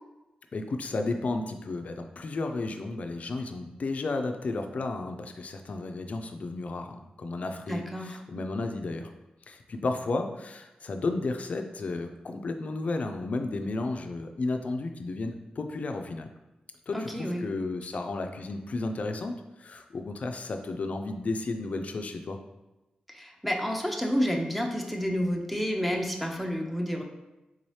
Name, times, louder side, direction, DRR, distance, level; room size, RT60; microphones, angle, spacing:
voice 1, 0.5-9.1 9.5-16.3 16.9-22.4, left 3 dB, 55° left, 6 dB, 0.4 m, -33 dB
voice 2, 7.7-8.2 16.9-17.5 23.1-27.0, equal, ahead, 1 dB, 0.5 m, -30 dB
3.7 x 2.7 x 3.1 m, 1.0 s
wide cardioid pair, 100°, 3 cm